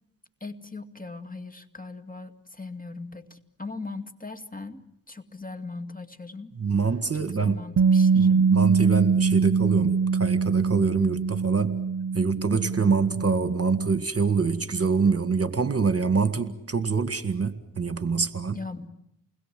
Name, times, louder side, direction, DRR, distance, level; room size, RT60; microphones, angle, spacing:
voice 1, 0.4-6.5 7.3-8.5 18.5-18.9, left 3 dB, 25° left, 8 dB, 2.3 m, -39 dB
voice 2, 6.6-7.6 8.1-11.8 12.1-18.6, right 5 dB, 40° right, 10 dB, 1.9 m, -25 dB
Bass guitar, 7.8-14.0, right 5 dB, 60° right, 0.9 m, -23 dB
29.0 x 21.0 x 7.7 m, 0.81 s
cardioid pair, 65°, 36 cm